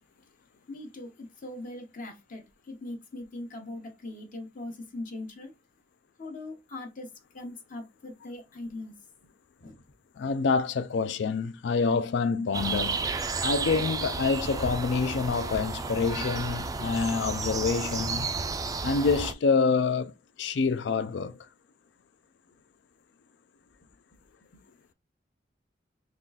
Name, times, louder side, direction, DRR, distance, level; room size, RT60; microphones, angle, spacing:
voice 1, 0.7-5.5 6.2-8.9 9.6-9.8 24.5-24.6, left 2 dB, 50° left, 0.9 m, -41 dB
voice 2, 10.2-13.1 13.4-18.3 18.8-20.1 20.4-21.5, left 4 dB, 70° left, 0.4 m, -27 dB
sound 1, 12.5-19.3, right 4 dB, 20° right, 0.3 m, -32 dB
3.7 x 2.4 x 3.9 m
head